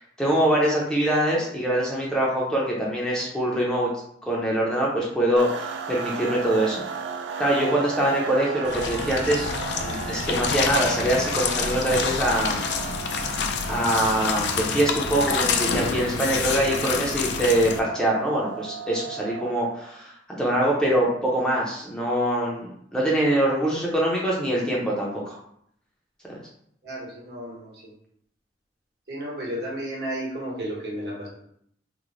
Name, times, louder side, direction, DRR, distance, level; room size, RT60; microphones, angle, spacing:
voice 1, 0.2-3.9 4.2-6.8 7.4-9.5 9.8-12.6 13.7-20.1 20.4-25.4 26.3-26.4, right 1 dB, 5° left, -4 dB, 0.5 m, -24 dB
sound 1, 5.4-19.9, right 6 dB, 85° right, 0.4 m, -35 dB
sound 2, 8.6-17.8, left 5 dB, 70° left, 0.3 m, -27 dB
voice 2, 26.8-27.7 29.1-31.3, right 1 dB, 60° right, -4 dB, 1.0 m, -32 dB
3.1 x 2.0 x 3.7 m, 0.70 s
head